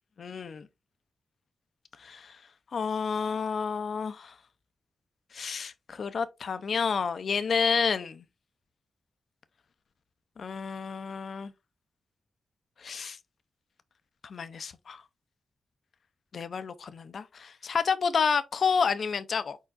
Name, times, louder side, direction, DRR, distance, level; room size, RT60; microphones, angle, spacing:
voice 1, 0.2-0.7 2.0-2.4 2.7-4.3 5.3-8.2 10.4-11.5 12.8-13.2 14.2-15.0 16.3-19.6, left 5 dB, 65° left, 0.5 m, -30 dB
4.5 x 4.4 x 2.4 m
cardioid pair, 85°, 0 cm